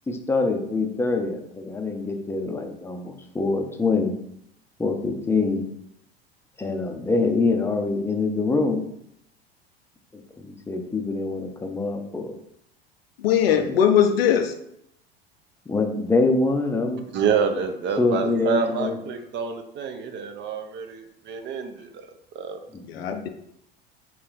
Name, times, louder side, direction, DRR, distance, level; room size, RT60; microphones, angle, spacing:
voice 1, 0.1-4.2 4.8-5.7 6.6-8.9 10.1-12.3 13.6-13.7 15.7-17.0 18.0-19.0 22.7-23.3, left 3 dB, 10° left, 4 dB, 0.6 m, -25 dB
voice 2, 13.2-14.5 22.9-23.3, left 9 dB, 75° left, 5 dB, 0.5 m, -20 dB
voice 3, 17.1-22.1 22.3-22.6, right 6 dB, 35° right, 6 dB, 0.7 m, -27 dB
4.2 x 3.1 x 3.9 m, 0.74 s
figure-of-eight pair, 75°, 30 cm